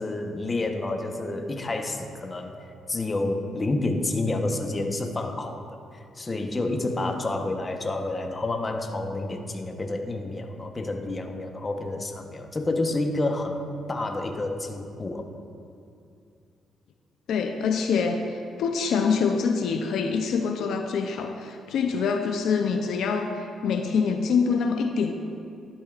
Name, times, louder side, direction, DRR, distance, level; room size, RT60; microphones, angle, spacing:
voice 1, 0.0-2.5 2.9-5.6 5.9-13.6 13.9-15.3, left 2 dB, 25° left, 4 dB, 1.0 m, -29 dB
voice 2, 17.3-18.2 18.6-25.1, left 5 dB, 75° left, 5 dB, 0.5 m, -25 dB
12.0 x 12.0 x 2.5 m, 2.5 s
cardioid pair, 90°, 0 cm